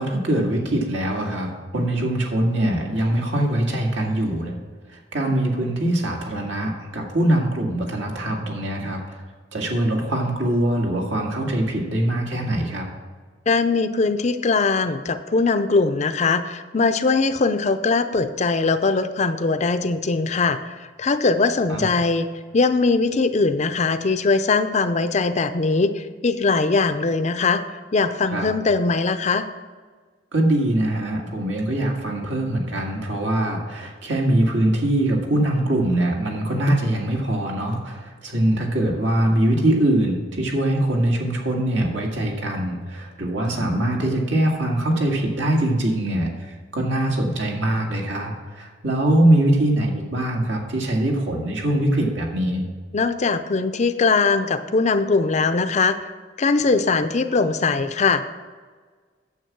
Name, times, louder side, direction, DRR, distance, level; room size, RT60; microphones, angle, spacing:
voice 1, 0.0-4.6 4.9-9.2 9.5-12.9 21.7-21.9 28.3-28.5 30.3-46.3 46.7-52.6, right 1 dB, 75° right, 0 dB, 1.9 m, -22 dB
voice 2, 13.5-20.6 21.0-22.3 22.5-27.6 27.9-29.5 52.9-56.0 56.4-58.2, left 4 dB, 40° left, 10 dB, 0.5 m, -21 dB
9.2 x 7.3 x 6.0 m, 1.5 s
head